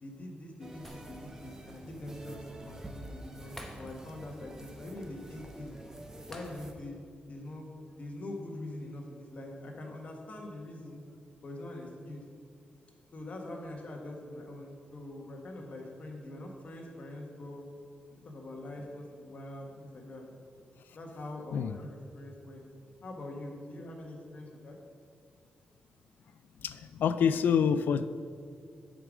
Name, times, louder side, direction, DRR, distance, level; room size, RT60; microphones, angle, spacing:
voice 1, 0.0-5.7 6.3-7.0 7.3-7.7 8.0-11.0 11.4-12.2 13.1-17.6 18.2-20.2 20.9-22.6 23.0-24.8, left 1 dB, 45° left, 0 dB, 1.4 m, -43 dB
sound 1, 0.6-6.7, right 1 dB, 15° right, 0.7 m, -48 dB
Shatter, 0.8-1.5 1.9-2.0 3.6-4.3 4.6-4.8 6.3-7.0 7.4-7.5, left 1 dB, 10° left, 0.9 m, -50 dB
voice 2, 26.6-28.1, left 7 dB, 90° left, 13 dB, 0.4 m, -27 dB
7.8 x 5.1 x 6.2 m, 2.2 s
wide cardioid pair, 135°, 3 cm